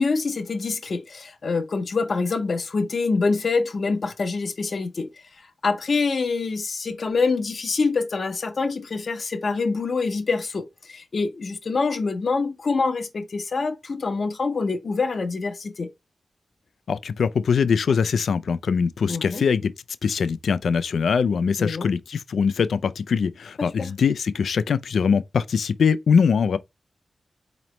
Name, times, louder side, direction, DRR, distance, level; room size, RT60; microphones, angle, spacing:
voice 1, 0.0-5.2 5.6-15.9 19.1-19.4 21.6-21.9 23.6-23.9, left 4 dB, 60° left, 0.7 m, -25 dB
voice 2, 16.9-19.7 20.0-26.6, left 6 dB, 80° left, 0.3 m, -22 dB
4.0 x 3.0 x 3.1 m
cardioid pair, 50°, 0 cm